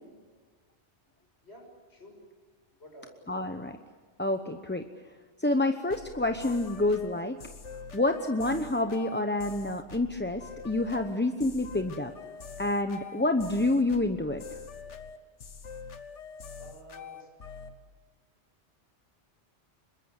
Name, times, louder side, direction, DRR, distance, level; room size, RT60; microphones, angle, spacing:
voice 1, 1.4-2.2 2.8-3.3 16.6-17.3, equal, 60° left, 2 dB, 6.8 m, -50 dB
voice 2, 3.3-3.8 4.2-4.8 5.4-7.4 7.9-12.1 12.6-14.4, left 2 dB, 10° left, 6 dB, 0.8 m, -28 dB
sound 1, 5.9-17.8, left 5 dB, 80° left, 1.6 m, -45 dB
25.5 x 22.5 x 8.1 m, 1.5 s
omnidirectional pair, 1.2 m